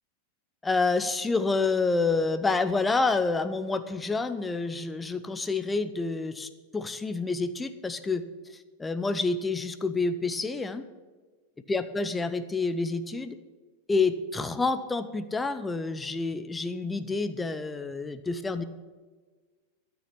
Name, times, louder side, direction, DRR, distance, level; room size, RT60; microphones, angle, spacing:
voice 1, 0.6-8.2 8.8-10.8 11.7-13.3 13.9-18.6, left 3 dB, 10° left, 11 dB, 0.8 m, -28 dB
13.5 x 7.1 x 9.0 m, 1.4 s
figure-of-eight pair, 90°, 0 cm